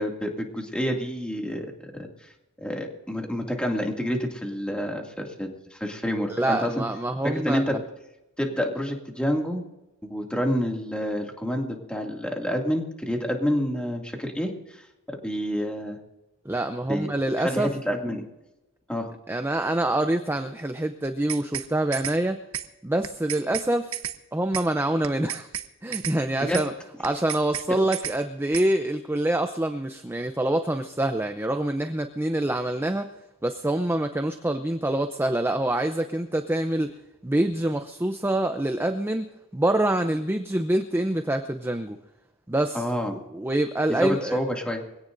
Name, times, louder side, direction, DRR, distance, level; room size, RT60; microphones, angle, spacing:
voice 1, 0.0-2.3 2.6-6.8 7.2-7.8 8.4-9.6 10.0-16.0 16.9-18.2 18.9-19.1 26.4-26.6 42.7-43.2 43.9-44.8, equal, 5° left, 1 dB, 2.3 m, -28 dB
voice 2, 6.3-7.8 16.5-17.7 19.3-22.4 22.8-23.9 24.3-25.5 25.8-26.7 27.0-33.1 33.4-36.9 37.2-39.3 39.5-42.0 42.5-42.8 43.1-44.4, right 1 dB, 10° right, 7 dB, 0.6 m, -26 dB
sound 1, 21.0-21.7 21.9-22.2 22.5-22.7 23.0-23.7 23.9-24.2 24.5-24.7 25.0-25.7 25.9-26.2 26.5-26.7 27.0-27.7 27.9-28.2 28.5-28.7, right 11 dB, 70° right, 1.0 m, -32 dB
23.5 x 17.0 x 2.6 m, 0.97 s
head